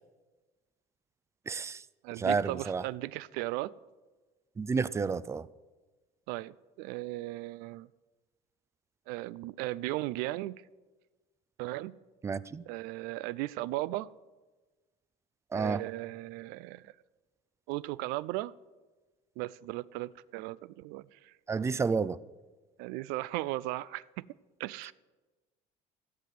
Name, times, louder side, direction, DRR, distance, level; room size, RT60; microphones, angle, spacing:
voice 1, 1.5-1.8 2.2-2.8 4.6-5.5 12.2-12.6 15.5-15.8 21.5-22.2, right 5 dB, 20° right, 0.4 m, -30 dB
voice 2, 2.0-3.7 6.3-7.9 9.1-10.6 11.6-12.0 12.7-14.1 15.5-16.9 17.7-18.5 19.4-21.3 22.8-24.3 24.6-24.9, right 18 dB, 85° right, 0.4 m, -36 dB
14.5 x 5.9 x 9.2 m
cardioid pair, 125°, 16 cm